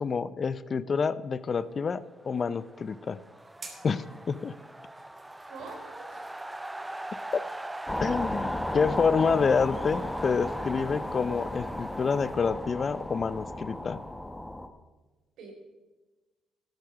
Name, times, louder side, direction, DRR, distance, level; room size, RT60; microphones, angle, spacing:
voice 1, 0.0-3.2 3.8-4.6 8.0-14.0, left 5 dB, 40° left, 17 dB, 0.5 m, -28 dB
sound 1, 2.1-14.0, right 1 dB, 10° right, 0.5 m, -42 dB
sound 2, 3.4-12.4, right 3 dB, 45° right, 2.7 m, -55 dB
voice 2, 5.4-6.4 15.4-15.5, right 3 dB, 80° right, 1 dB, 4.0 m, -44 dB
sound 3, 7.9-14.7, left 1 dB, 10° left, 1.0 m, -34 dB
13.5 x 8.1 x 6.2 m, 1.2 s
cardioid pair, 90°, 0 cm